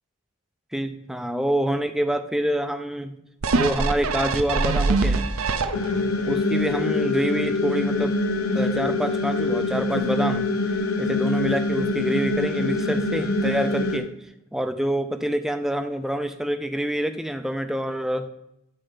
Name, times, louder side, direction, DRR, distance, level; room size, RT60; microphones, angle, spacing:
voice 1, 0.7-3.2 3.5-5.3 6.3-8.2 8.5-10.4 11.0-14.1 14.5-18.3, right 1 dB, ahead, 8 dB, 0.4 m, -26 dB
sound 1, 3.4-6.1 6.6-6.7, right 3 dB, 75° right, 0.7 m, -23 dB
sound 2, 5.7-14.0, left 2 dB, 70° left, 1.1 m, -24 dB
7.8 x 4.4 x 6.6 m, 0.83 s
head